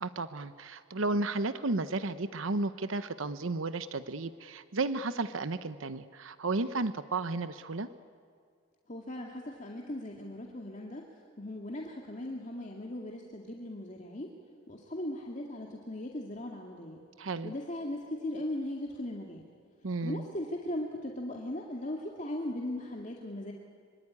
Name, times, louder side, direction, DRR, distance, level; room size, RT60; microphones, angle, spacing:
voice 1, 0.0-7.9 17.2-17.5 19.8-20.3, right 3 dB, 85° right, 12 dB, 0.9 m, -33 dB
voice 2, 8.9-11.0 11.4-14.3 14.7-17.0 17.4-19.4 20.0-23.5, left 1 dB, 40° left, 0 dB, 2.2 m, -38 dB
25.0 x 24.5 x 9.7 m, 2.1 s
head